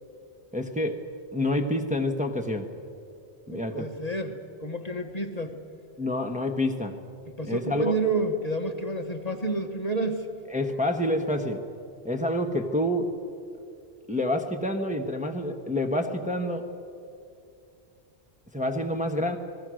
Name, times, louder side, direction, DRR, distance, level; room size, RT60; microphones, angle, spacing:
voice 1, 0.5-1.0 1.3-2.7 3.5-3.9 6.0-7.0 7.5-7.9 10.5-11.6 12.0-13.1 14.1-16.7 18.5-19.4, left 1 dB, 5° right, 4 dB, 1.2 m, -27 dB
voice 2, 3.5-4.3 4.6-5.5 7.4-10.3, right 2 dB, 35° left, 4 dB, 1.6 m, -29 dB
30.0 x 20.0 x 6.4 m, 2.5 s
omnidirectional pair, 1.1 m